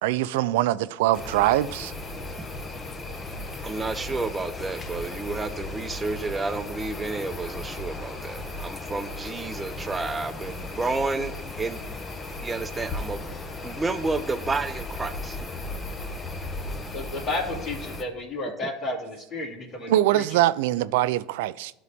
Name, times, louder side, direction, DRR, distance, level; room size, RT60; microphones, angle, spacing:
voice 1, 0.0-1.9 19.9-21.7, right 14 dB, 85° right, 0.3 m, -23 dB
sound 1, 1.1-18.0, left 2 dB, 25° left, 0.9 m, -36 dB
voice 2, 3.6-12.0 12.4-13.3 13.6-15.4, right 3 dB, 20° right, 0.7 m, -31 dB
voice 3, 16.9-20.2, left 2 dB, 50° left, 2.3 m, -32 dB
12.0 x 4.0 x 3.5 m
supercardioid pair, 110°, 0 cm